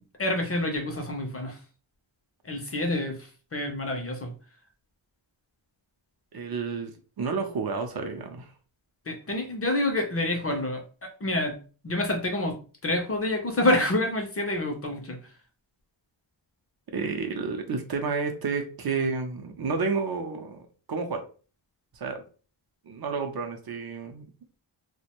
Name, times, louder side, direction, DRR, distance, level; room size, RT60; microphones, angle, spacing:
voice 1, 0.2-1.6 2.4-4.3 9.1-11.6 11.8-12.6 12.8-15.2, left 1 dB, 30° left, 3 dB, 0.5 m, -27 dB
voice 2, 6.3-8.5 16.9-21.2 21.9-22.2 22.9-24.2, right 4 dB, 50° right, 5 dB, 0.5 m, -31 dB
2.5 x 2.1 x 2.9 m, 0.37 s
wide cardioid pair, 135°, 47 cm